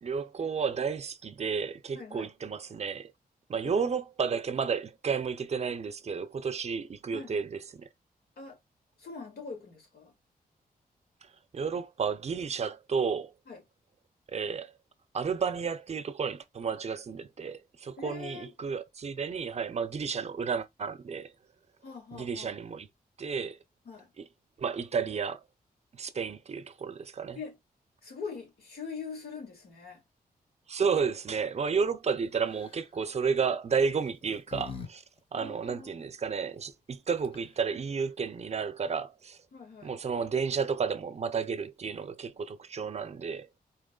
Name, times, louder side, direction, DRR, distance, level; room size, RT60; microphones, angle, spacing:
voice 1, 0.0-3.1 3.5-7.9 11.2-13.3 14.3-14.7 15.1-21.3 22.1-22.9 23.2-23.6 24.6-25.4 25.9-27.4 30.7-35.0 35.3-39.4 39.8-43.5, right 6 dB, 45° right, 0.6 m, -32 dB
voice 2, 1.9-2.3 3.6-3.9 7.1-7.5 8.4-8.6 9.0-10.1 13.5-13.6 18.0-18.5 21.8-22.6 23.8-24.1 27.3-27.6 28.0-30.0 35.3-35.9 39.5-40.0, left 5 dB, 85° left, 2.5 m, -43 dB
sound 1, 32.4-32.9 33.8-34.9 35.2-35.3 36.9-37.0 37.2-37.7, left 5 dB, 35° left, 0.8 m, -43 dB
4.4 x 3.0 x 3.8 m
wide cardioid pair, 140°, 15 cm